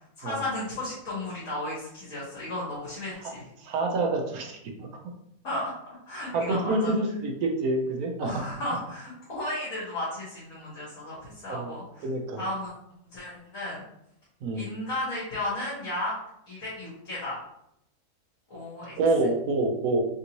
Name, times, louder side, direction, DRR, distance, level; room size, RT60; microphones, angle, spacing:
voice 1, 0.2-3.5 5.4-5.7 6.1-6.9 8.2-12.0 12.4-12.7 13.1-13.8 14.5-16.1 16.5-17.4 18.5-19.0, left 1 dB, 55° left, -8 dB, 1.5 m, -34 dB
voice 2, 3.6-4.9 6.3-8.4 11.5-11.7 12.0-12.4 14.4-14.7 19.0-20.0, right 2 dB, 70° right, 2 dB, 1.1 m, -27 dB
3.5 x 2.6 x 2.9 m, 0.78 s
omnidirectional pair, 1.7 m